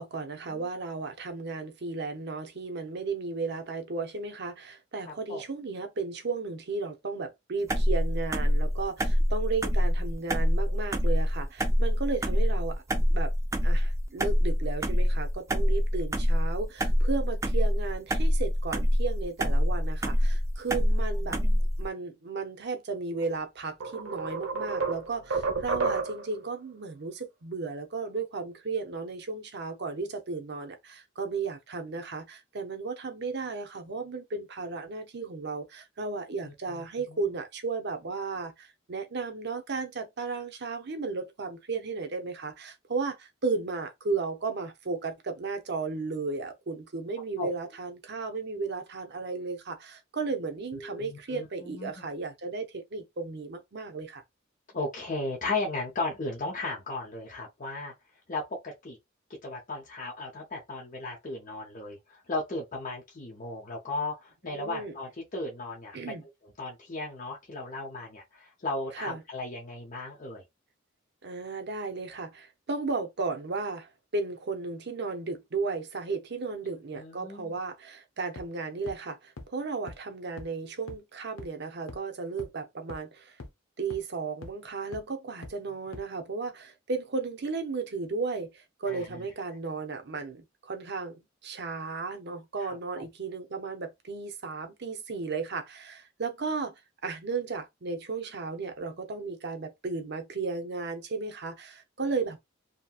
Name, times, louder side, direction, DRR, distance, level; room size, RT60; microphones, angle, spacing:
voice 1, 0.0-13.3 13.6-21.4 21.8-54.2 64.5-64.9 65.9-66.2 68.9-69.2 71.2-83.4 83.8-96.7 97.0-102.4, right 4 dB, 55° right, 0.7 m, -34 dB
voice 2, 5.1-5.4 12.9-13.1 20.7-20.8 21.2-21.7 36.4-37.4 47.4-47.5 50.7-52.0 54.7-57.9 58.3-59.0 59.4-66.1 66.6-70.4 76.9-77.6 88.9-89.1 92.6-93.0 102.0-102.1, left 2 dB, 40° left, 0.7 m, -36 dB
sound 1, 7.7-21.9, equal, 15° right, 0.4 m, -25 dB
sound 2, 23.2-23.3 23.8-26.4, right 4 dB, 85° right, 0.9 m, -31 dB
sound 3, 78.4-78.5 78.9-79.0 79.4-79.5 79.9-80.0 80.4-80.5 80.9-81.0 81.4-81.5 81.9-82.0 82.4-82.5 82.9-83.0 83.4-83.5 83.9-84.0 84.4-84.5 84.9-85.0 85.4-85.5 85.9-86.0, left 2 dB, 75° left, 0.7 m, -41 dB
2.8 x 2.8 x 2.3 m
head